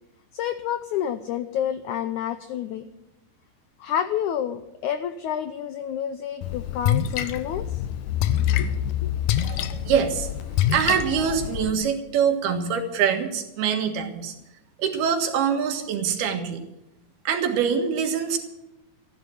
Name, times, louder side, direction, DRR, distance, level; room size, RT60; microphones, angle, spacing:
voice 1, 0.3-2.9 3.8-7.8 8.6-8.7 9.0-9.1, left 9 dB, 90° left, 10 dB, 1.7 m, -29 dB
Splash splatter, 6.4-11.7, left 11 dB, 75° left, 2.0 m, -26 dB
voice 2, 9.4-10.3 10.7-14.3 14.8-16.6 17.3-18.4, right 7 dB, 90° right, 4 dB, 3.7 m, -24 dB
14.5 x 11.5 x 7.8 m, 0.90 s
omnidirectional pair, 4.3 m